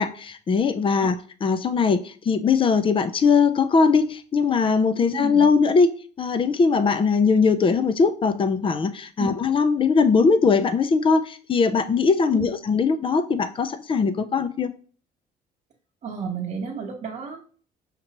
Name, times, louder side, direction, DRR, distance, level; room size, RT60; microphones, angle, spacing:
voice 1, 0.0-5.9 6.2-14.7, left 5 dB, 30° left, 0.4 m, -20 dB
voice 2, 5.1-5.4 9.2-9.3 12.3-12.5 16.0-17.4, right 5 dB, 45° right, 0.8 m, -31 dB
5.2 x 2.9 x 2.9 m
cardioid pair, 110°, 17 cm